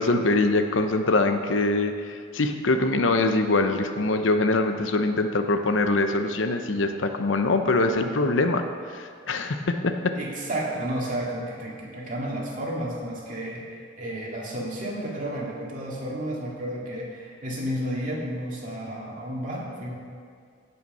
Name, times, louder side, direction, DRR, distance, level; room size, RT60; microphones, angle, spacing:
voice 1, 0.0-8.6 8.9-10.1, left 2 dB, 80° left, 7 dB, 0.8 m, -23 dB
voice 2, 10.1-19.9, right 1 dB, 45° right, -4 dB, 2.3 m, -32 dB
15.5 x 5.7 x 5.5 m, 2.1 s
head